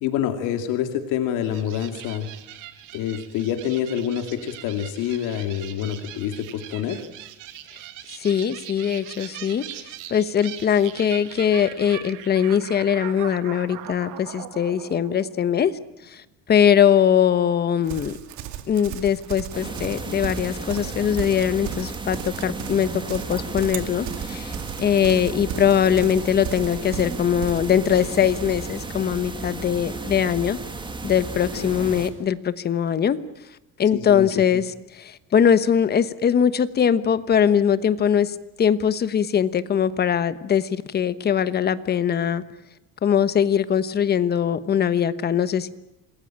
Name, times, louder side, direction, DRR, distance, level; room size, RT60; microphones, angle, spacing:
voice 1, 0.0-2.3 2.9-7.0 31.5-31.9 33.9-34.3, left 10 dB, 80° left, 7 dB, 2.5 m, -27 dB
sound 1, 1.4-16.1, right 13 dB, 85° right, 2.3 m, -41 dB
voice 2, 8.2-9.6 10.1-15.8 16.1-16.2 16.5-18.1 18.7-24.5 24.8-30.6 31.0-33.2 33.8-42.4 43.0-45.7, left 8 dB, 30° left, 14 dB, 1.2 m, -21 dB
Livestock farm animals working animals, 17.8-29.0, right 11 dB, 65° right, 2.4 m, -36 dB
sound 2, 19.5-32.1, right 3 dB, 15° right, 2.5 m, -34 dB
28.0 x 21.0 x 8.8 m, 0.91 s
cardioid pair, 155°, 31 cm